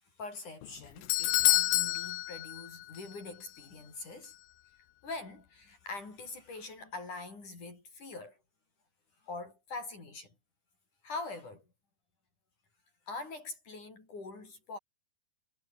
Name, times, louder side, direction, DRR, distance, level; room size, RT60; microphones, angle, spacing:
voice 1, 0.2-4.3 5.0-8.4 9.2-10.3 11.0-11.7 13.1-14.8, left 3 dB, 50° left, 8.1 m, -43 dB
Doorbell, 0.6-3.1 3.4-3.5 4.2-4.3, left 18 dB, 80° left, 2.3 m, -29 dB
omnidirectional pair, 4.5 m